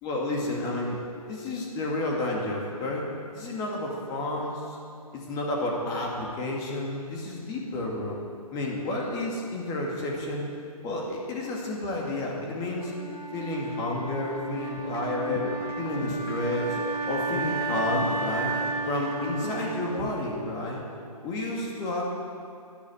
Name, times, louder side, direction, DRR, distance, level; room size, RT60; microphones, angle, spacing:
voice 1, 0.0-1.0 1.3-3.0 3.3-4.8 5.1-8.2 8.5-10.5 10.8-12.9 13.3-15.4 15.8-16.8 17.0-18.5 18.8-20.8 21.2-22.0, left 2 dB, 20° left, -2 dB, 2.2 m, -31 dB
Wind instrument woodwind instrument, 12.8-20.8, right 3 dB, 85° right, 2.4 m, -33 dB
sound 1, 14.8-20.8, left 6 dB, 40° left, 1.1 m, -39 dB
12.0 x 11.5 x 8.7 m, 2.4 s
figure-of-eight pair, 135°, 20 cm